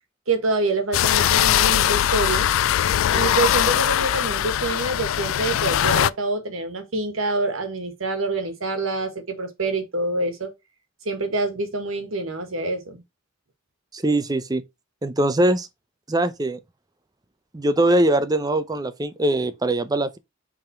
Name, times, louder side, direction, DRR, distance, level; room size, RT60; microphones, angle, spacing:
voice 1, 0.3-2.5 3.1-10.5 11.0-13.0, right 3 dB, 85° right, 1.5 m, -26 dB
sound 1, 0.9-6.1, left 11 dB, 75° left, 0.3 m, -21 dB
voice 2, 13.9-14.6 15.0-15.7 16.1-16.6 17.5-20.2, right 1 dB, 20° right, 0.5 m, -22 dB
5.6 x 3.7 x 4.6 m
head